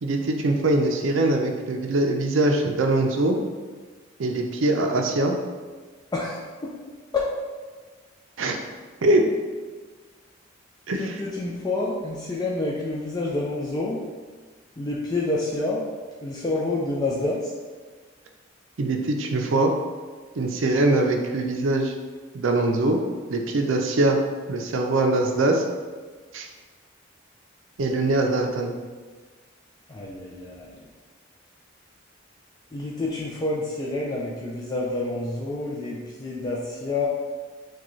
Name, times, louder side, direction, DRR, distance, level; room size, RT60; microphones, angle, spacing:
voice 1, 0.0-3.4 4.2-5.4 8.4-8.6 9.0-9.3 10.9-11.2 18.8-19.7 20.4-21.9 22.3-23.0 23.3-24.2 24.5-25.6 26.3-26.5 27.8-28.7, right 2 dB, 75° right, 3 dB, 0.5 m, -22 dB
voice 2, 6.1-6.7 7.1-7.2 10.9-14.0 14.8-15.8 16.2-17.5 29.9-30.7 32.7-37.1, left 2 dB, 20° left, -4 dB, 0.4 m, -28 dB
6.1 x 2.3 x 3.1 m, 1.4 s
head